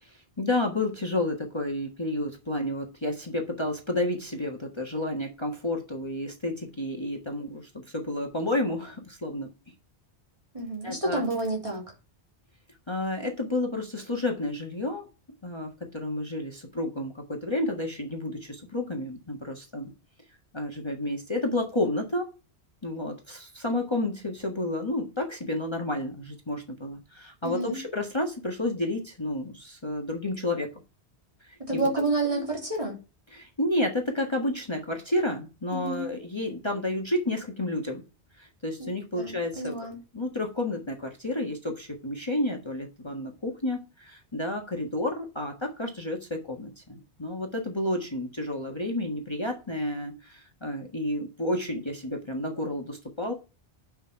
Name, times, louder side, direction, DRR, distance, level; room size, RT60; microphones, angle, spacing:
voice 1, 0.0-9.5 10.8-11.2 12.9-15.1 15.4-19.9 20.5-22.3 22.8-30.7 31.4-31.8 32.2-32.4 33.3-38.0 38.4-39.8 40.1-53.3, left 1 dB, 25° left, 1.7 m, -31 dB
voice 2, 10.5-11.9 27.4-27.8 31.7-33.0 35.8-36.1 38.8-40.0, right 2 dB, 30° right, 3.6 m, -29 dB
8.4 x 5.7 x 5.7 m
omnidirectional pair, 1.1 m